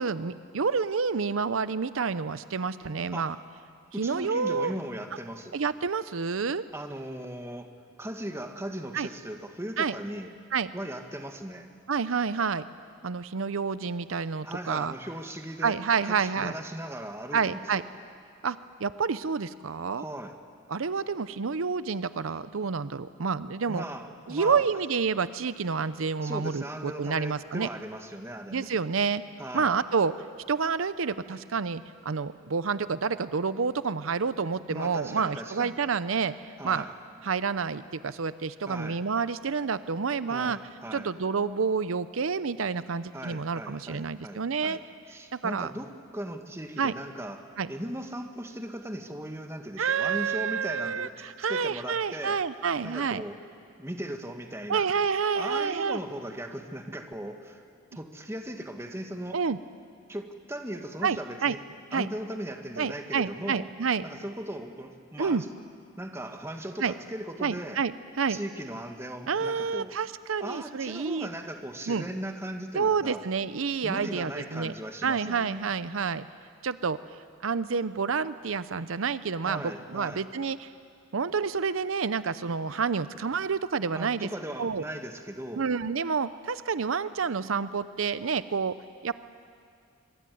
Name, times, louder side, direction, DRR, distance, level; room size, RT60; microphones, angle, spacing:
voice 1, 0.0-3.4 4.0-4.7 5.5-6.6 8.9-9.1 9.8-10.0 10.5-10.7 11.9-12.7 13.0-14.9 15.6-16.5 17.3-17.8 18.4-20.0 20.7-23.8 24.3-27.7 28.5-29.2 29.5-30.1 30.5-36.3 36.6-36.8 37.2-40.6 40.9-44.8 45.3-45.7 46.8-46.9 47.6-47.7 49.8-53.2 54.7-56.0 59.3-59.6 61.0-61.6 61.9-62.1 62.8-64.0 65.2-65.4 66.8-66.9 67.4-67.9 68.2-68.4 69.3-71.3 71.9-72.0 72.7-74.7 75.0-76.3 76.6-77.0 77.4-80.7 81.1-84.3 84.6-84.8 85.6-88.7 89.0-89.1, right 5 dB, 80° right, 14 dB, 0.7 m, -29 dB
voice 2, 3.9-5.6 6.7-7.7 8.0-10.3 10.7-11.7 14.4-17.8 20.0-20.4 23.7-24.7 26.2-28.7 29.4-29.8 34.7-35.8 36.6-36.9 38.6-39.0 40.3-41.1 43.1-44.8 45.1-51.1 51.4-52.4 52.8-53.4 53.8-54.9 55.3-57.6 57.9-59.4 60.1-61.6 61.9-63.7 64.0-65.5 66.0-67.8 68.3-69.9 70.4-73.2 73.8-75.7 79.4-80.3 83.9-85.7, right 1 dB, 15° right, 5 dB, 1.6 m, -38 dB
24.0 x 23.5 x 9.4 m, 2.3 s
head